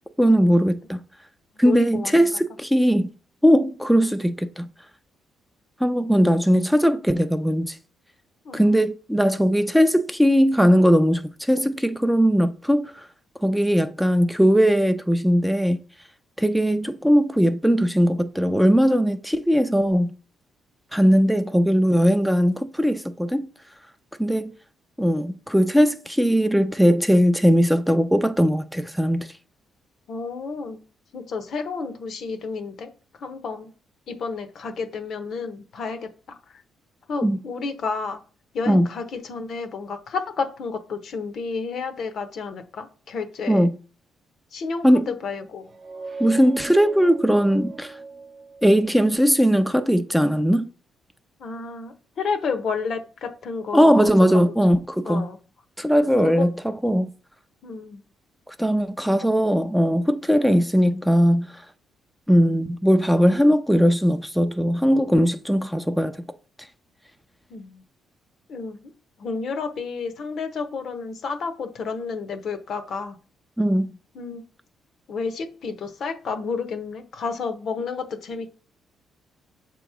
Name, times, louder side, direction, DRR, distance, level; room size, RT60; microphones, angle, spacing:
voice 1, 0.2-1.0 1.6-3.1 3.4-4.7 5.8-7.8 8.5-13.1 13.4-15.8 16.4-20.1 20.9-23.5 24.2-24.5 25.0-29.3 37.2-37.4 38.7-38.9 43.5-43.7 44.8-45.0 46.2-47.9 48.6-50.7 53.7-55.3 55.8-57.1 58.6-61.5 62.3-66.2 73.6-73.9, equal, ahead, 0.5 m, -19 dB
voice 2, 1.6-2.3 8.4-8.8 30.1-30.8 31.1-32.9 33.2-33.7 34.1-36.6 37.1-38.2 38.5-43.7 44.5-45.7 51.4-53.9 55.0-55.4 56.2-56.5 57.6-58.0 67.5-67.8 68.5-68.9 69.2-73.2 74.1-74.4 75.1-78.5, left 4 dB, 60° left, 0.9 m, -31 dB
sound 1, 45.6-49.2, right 4 dB, 35° right, 0.7 m, -39 dB
6.8 x 3.0 x 4.8 m
cardioid pair, 90°, 0 cm